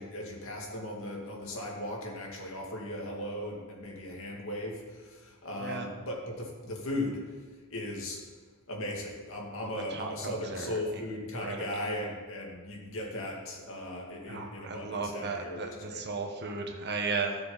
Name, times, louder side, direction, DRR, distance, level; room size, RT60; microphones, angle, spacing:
voice 1, 0.0-7.2 7.7-8.2 8.7-16.0, left 1 dB, 65° left, -2 dB, 2.5 m, -37 dB
voice 2, 9.6-10.8 11.4-11.8 14.3-17.4, right 4 dB, 50° right, 3 dB, 1.3 m, -35 dB
17.0 x 6.9 x 4.1 m, 1.4 s
head